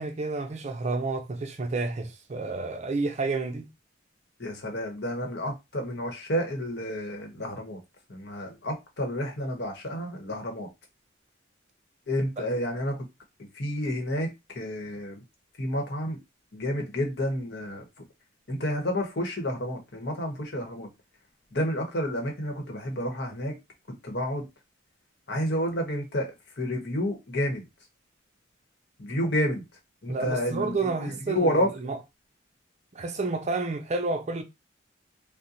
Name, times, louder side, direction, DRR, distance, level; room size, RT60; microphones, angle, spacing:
voice 1, 0.0-3.7 12.4-12.5 30.1-32.0 32.9-34.4, right 3 dB, 35° right, 0.4 m, -30 dB
voice 2, 4.4-7.8 8.1-10.7 12.1-13.0 13.5-14.3 14.5-15.2 15.6-16.2 16.5-17.8 18.5-20.9 21.5-23.6 24.0-24.5 25.3-26.3 26.6-27.6 29.0-29.6 30.0-31.7, equal, 60° left, 1.0 m, -30 dB
2.8 x 2.1 x 3.8 m
head